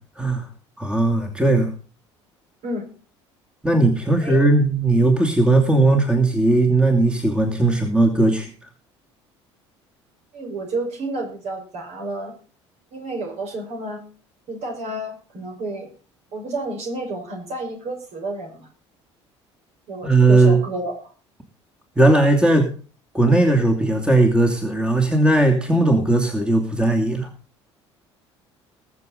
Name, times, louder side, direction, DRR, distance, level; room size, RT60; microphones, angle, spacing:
voice 1, 0.8-1.7 3.6-8.5 20.0-20.6 22.0-22.7 23.1-27.3, right 2 dB, 5° right, 3 dB, 2.7 m, -17 dB
voice 2, 10.3-12.3 12.9-14.0 14.5-15.9 16.3-18.7 19.9-21.0, right 2 dB, 45° right, 3 dB, 5.0 m, -30 dB
21.0 x 7.2 x 3.9 m, 0.38 s
figure-of-eight pair, 60°, 15 cm